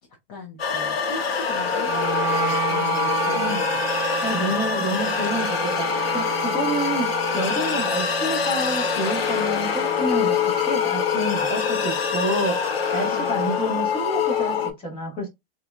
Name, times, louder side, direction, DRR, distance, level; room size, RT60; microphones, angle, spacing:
voice 1, 0.3-1.9 2.3-3.8 4.3-4.6 13.0-13.6, left 3 dB, 35° left, 1.0 m, -39 dB
sound 1, 0.6-14.7, left 6 dB, 80° left, 1.2 m, -24 dB
Wind instrument woodwind instrument, 1.8-12.0, right 6 dB, 10° right, 0.8 m, -32 dB
voice 2, 3.3-3.7 4.2-12.6 12.9-15.3, right 1 dB, 20° left, 1.7 m, -28 dB
4.1 x 2.9 x 2.4 m
supercardioid pair, 155°, 30 cm